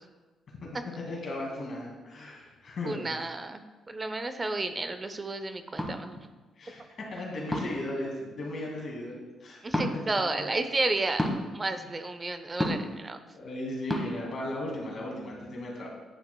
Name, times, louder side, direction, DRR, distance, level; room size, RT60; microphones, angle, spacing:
voice 1, 1.0-3.2 6.6-9.6 11.7-11.9 13.3-15.9, left 1 dB, 50° left, -1 dB, 2.1 m, -36 dB
voice 2, 2.8-6.3 9.6-11.2 11.5-13.2, right 2 dB, 25° right, 9 dB, 0.5 m, -32 dB
sound 1, 5.8-5.9 7.5-7.8 9.7-9.9 11.2-11.4 12.6-12.9 13.9-14.0, left 1 dB, 5° left, 1.2 m, -28 dB
9.9 x 6.0 x 2.3 m, 1.2 s
cardioid pair, 90°, 0 cm